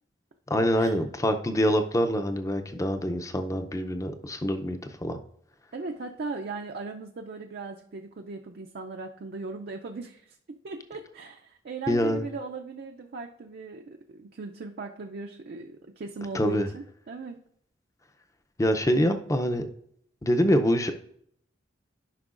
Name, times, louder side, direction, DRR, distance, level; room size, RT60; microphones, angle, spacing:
voice 1, 0.5-5.2 11.9-12.2 16.3-16.7 18.6-19.7 20.2-20.9, equal, 15° left, 7 dB, 0.5 m, -25 dB
voice 2, 5.7-17.4, right 3 dB, 55° right, 3 dB, 0.4 m, -38 dB
11.5 x 5.5 x 2.5 m, 0.67 s
head